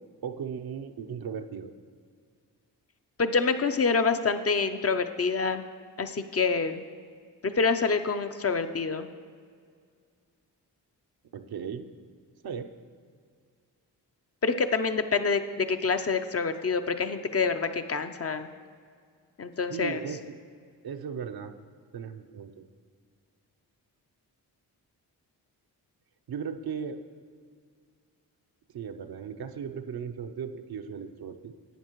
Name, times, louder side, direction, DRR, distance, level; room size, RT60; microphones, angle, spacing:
voice 1, 0.2-1.7 11.3-11.9 12.4-12.7 19.7-20.4 20.8-21.5 21.9-22.6 26.3-27.0 28.7-31.6, right 7 dB, 60° right, 7 dB, 0.7 m, -37 dB
voice 2, 3.2-5.6 6.0-6.8 7.4-9.1 14.4-18.5 19.4-20.0, left 4 dB, 35° left, 8 dB, 0.5 m, -27 dB
11.0 x 8.5 x 3.0 m, 2.1 s
supercardioid pair, 50°, 41 cm